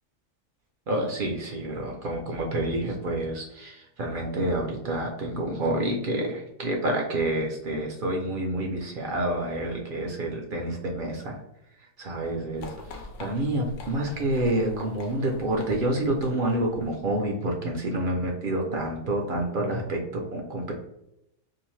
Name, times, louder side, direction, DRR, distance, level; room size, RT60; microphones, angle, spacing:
voice 1, 0.9-11.4 12.0-12.7 13.2-20.7, right 1 dB, 60° right, 1 dB, 0.6 m, -28 dB
sound 1, 12.6-17.3, left 2 dB, 85° left, 0.9 m, -44 dB
2.7 x 2.5 x 3.0 m, 0.82 s
omnidirectional pair, 1.2 m